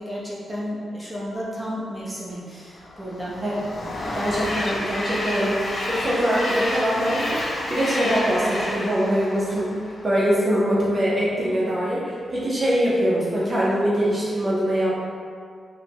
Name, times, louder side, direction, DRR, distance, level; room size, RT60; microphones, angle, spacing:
voice 1, 0.0-3.4, equal, ahead, -7 dB, 0.9 m, -32 dB
Train, 2.8-10.2, left 1 dB, 50° left, 0.5 m, -29 dB
voice 2, 4.1-14.9, equal, 30° right, -7 dB, 0.7 m, -23 dB
4.9 x 2.2 x 2.9 m, 2.1 s
cardioid pair, 95°, 0 cm